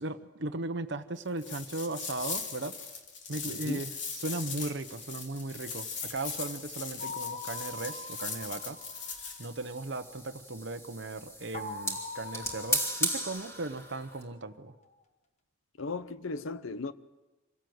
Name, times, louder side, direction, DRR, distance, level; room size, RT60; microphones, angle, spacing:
voice 1, 0.0-2.8 3.3-8.8 9.4-14.7, right 2 dB, 60° right, 0.9 m, -37 dB
sound 1, 1.4-9.5, left 5 dB, 60° left, 2.8 m, -40 dB
voice 2, 3.5-3.8 15.8-16.9, left 3 dB, 80° left, 0.8 m, -36 dB
sound 2, 4.9-14.2, equal, 15° left, 2.8 m, -39 dB
sound 3, 7.0-9.9 11.5-14.4, left 4 dB, 35° left, 1.3 m, -44 dB
26.5 x 16.5 x 7.9 m
head